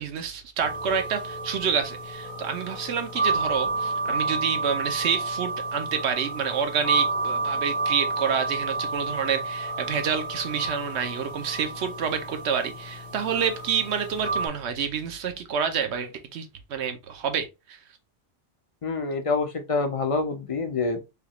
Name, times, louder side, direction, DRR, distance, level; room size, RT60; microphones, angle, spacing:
voice 1, 0.0-17.8, right 7 dB, 70° right, 1.0 m, -28 dB
sound 1, 0.6-14.5, right 3 dB, 65° left, 1.2 m, -30 dB
voice 2, 18.8-21.1, left 4 dB, 40° left, 0.5 m, -27 dB
5.0 x 2.4 x 3.0 m
omnidirectional pair, 1.2 m